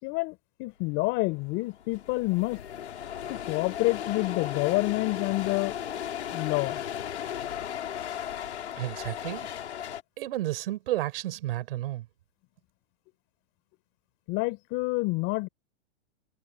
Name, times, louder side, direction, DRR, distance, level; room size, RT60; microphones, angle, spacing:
voice 1, 0.0-2.6 3.3-5.7 6.3-6.8 14.3-15.5, left 24 dB, 35° left, 4.4 m, -28 dB
sound 1, 1.2-1.3 1.5-10.0, left 10 dB, 85° left, 5.1 m, -36 dB
voice 2, 8.8-9.5 10.2-12.0, right 15 dB, 60° right, 6.2 m, -32 dB
hypercardioid pair, 145°, 33 cm